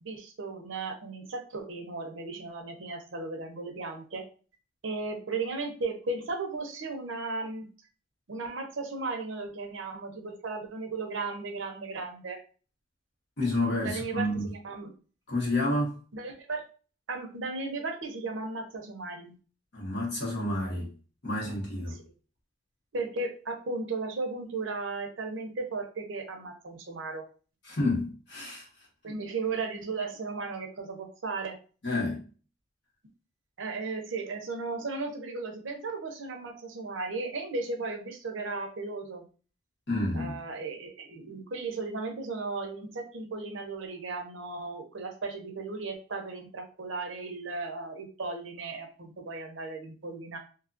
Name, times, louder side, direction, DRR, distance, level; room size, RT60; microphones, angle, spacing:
voice 1, 0.0-4.2 4.8-7.7 8.3-12.4 13.8-14.9 16.1-16.6 17.1-19.3 22.9-27.2 29.0-31.6 33.6-39.2 40.1-50.4, right 3 dB, 70° right, 0.6 m, -35 dB
voice 2, 13.4-14.5 15.3-16.0 19.7-20.9 21.2-22.0 27.6-28.7 31.8-32.2 39.9-40.4, left 1 dB, 60° left, 1.1 m, -29 dB
2.7 x 2.3 x 2.5 m
head